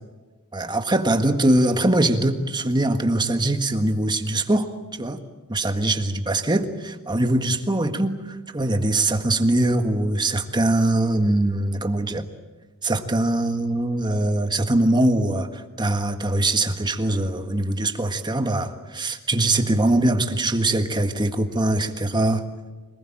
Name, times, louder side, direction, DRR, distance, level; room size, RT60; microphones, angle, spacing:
voice 1, 0.5-4.7 5.0-5.2 5.5-12.2 12.8-22.4, right 1 dB, 20° right, 7 dB, 1.6 m, -22 dB
26.5 x 20.0 x 8.9 m, 1.3 s
head